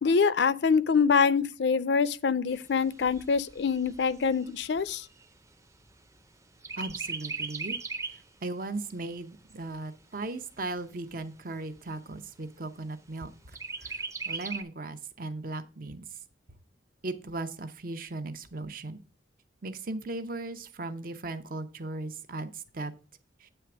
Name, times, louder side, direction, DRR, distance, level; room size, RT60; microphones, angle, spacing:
voice 1, 0.0-5.0, left 5 dB, 70° left, 0.5 m, -25 dB
Chirp tweet, 2.5-6.2 6.6-8.3 8.7-8.8 9.2-10.2 10.8-10.9 11.2-11.3 11.8-12.3 13.5-14.6, right 4 dB, 15° right, 0.6 m, -38 dB
voice 2, 6.8-7.8 8.1-16.2 17.0-19.0 19.6-22.9 23.4-23.5, right 2 dB, 50° right, 0.8 m, -37 dB
9.1 x 3.4 x 6.0 m
head